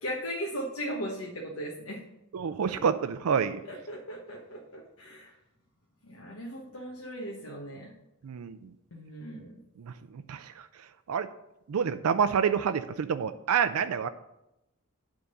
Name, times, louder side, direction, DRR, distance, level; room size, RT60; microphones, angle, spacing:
voice 1, 0.0-2.0 2.6-2.8 3.7-5.3 6.0-7.9 8.9-9.5, equal, 70° left, -2 dB, 1.2 m, -38 dB
voice 2, 2.3-3.6 8.2-8.6 9.9-10.0 10.3-10.5 11.1-11.3 11.7-14.1, right 7 dB, 90° right, 11 dB, 0.4 m, -27 dB
9.6 x 3.7 x 6.7 m, 0.88 s
head